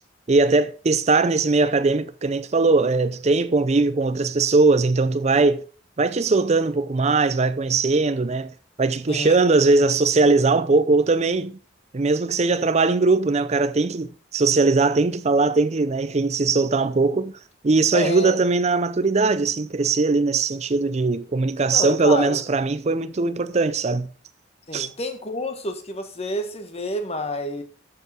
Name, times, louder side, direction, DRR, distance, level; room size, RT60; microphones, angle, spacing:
voice 1, 0.3-5.6 6.0-8.5 8.8-11.6 11.9-17.3 17.6-24.1 24.7-24.9, right 3 dB, 35° right, 0.5 m, -20 dB
voice 2, 9.1-9.4 17.9-18.4 21.7-22.4 24.7-27.6, left 1 dB, 35° left, 1.6 m, -29 dB
13.5 x 6.8 x 4.3 m
head